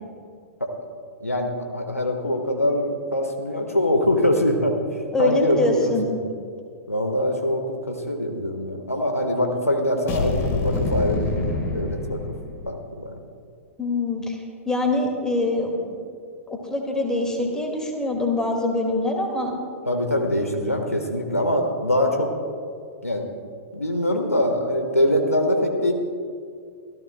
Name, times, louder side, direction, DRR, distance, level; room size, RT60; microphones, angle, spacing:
voice 1, 1.2-4.7 5.2-6.2 6.9-12.2 12.6-13.1 19.9-22.3 23.0-23.3 23.7-25.9, left 1 dB, 90° left, 4 dB, 1.4 m, -23 dB
voice 2, 5.1-6.0 13.8-16.0 16.5-19.5, left 2 dB, 10° left, 2 dB, 2.1 m, -24 dB
sound 1, 10.1-12.8, left 3 dB, 30° left, 1.6 m, -26 dB
24.5 x 14.5 x 2.3 m, 2.2 s
figure-of-eight pair, 100°, 8 cm